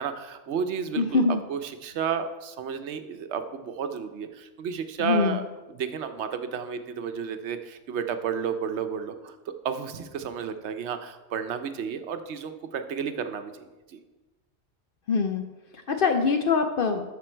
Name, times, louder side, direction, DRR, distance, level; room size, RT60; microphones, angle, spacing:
voice 1, 0.0-5.4 5.7-13.5 13.9-14.0, right 7 dB, 75° right, 8 dB, 1.0 m, -32 dB
voice 2, 1.0-1.4 5.0-5.4 15.1-15.4 15.9-17.0, left 4 dB, 60° left, 6 dB, 0.7 m, -23 dB
13.0 x 5.2 x 4.4 m, 1.1 s
omnidirectional pair, 1.2 m